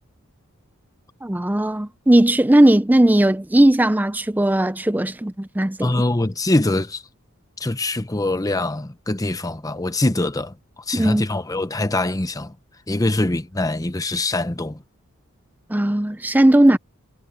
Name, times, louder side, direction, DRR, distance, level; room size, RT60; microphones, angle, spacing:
voice 1, 1.2-5.9 10.9-11.3 15.7-16.8, right 1 dB, 10° right, 0.5 m, -17 dB
voice 2, 5.8-7.0 7.6-10.5 10.9-12.5 12.9-14.8, left 2 dB, 15° left, 0.8 m, -23 dB
head